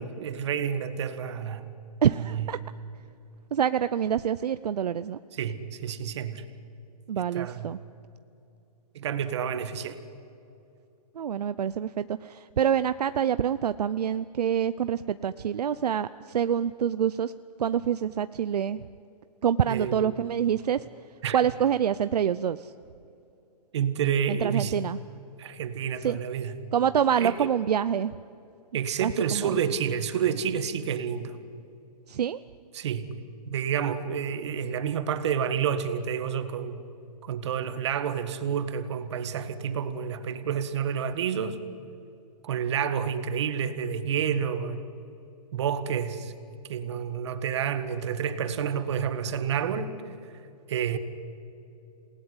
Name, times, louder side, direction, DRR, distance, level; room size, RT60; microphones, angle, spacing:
voice 1, 0.0-1.7 2.1-2.5 5.3-6.4 7.3-7.7 8.9-10.0 19.7-20.2 21.2-21.4 23.7-24.8 25.4-26.5 27.2-27.5 28.7-31.4 32.7-33.1 33.5-36.8 37.2-41.6 42.4-44.8 45.5-46.3 46.7-50.0 50.7-51.0, right 8 dB, 45° right, 10 dB, 1.8 m, -29 dB
voice 2, 2.0-2.6 3.5-5.2 7.1-7.8 11.1-17.3 17.6-18.8 19.4-20.8 21.3-22.7 24.3-25.0 26.0-26.2 26.7-28.2 29.0-29.5 32.1-32.4, right 9 dB, 75° right, 13 dB, 0.7 m, -26 dB
28.0 x 19.0 x 9.8 m, 2.8 s
hypercardioid pair, 165°, 21 cm